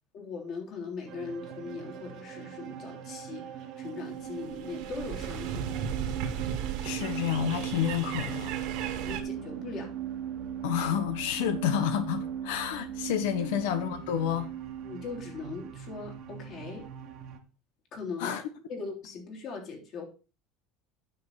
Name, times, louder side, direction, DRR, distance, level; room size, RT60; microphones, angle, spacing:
voice 1, 0.1-5.8 9.0-9.9 13.4-13.6 14.8-16.9 17.9-18.4 18.7-20.0, left 4 dB, 45° left, 3.2 m, -40 dB
sound 1, 1.1-17.4, right 10 dB, 50° right, 1.5 m, -39 dB
sound 2, 4.3-9.2, right 8 dB, 65° right, 2.1 m, -36 dB
voice 2, 6.8-8.6 10.6-14.5 18.2-18.4, left 10 dB, 85° left, 1.2 m, -29 dB
9.4 x 6.6 x 4.1 m
cardioid pair, 145°, 0 cm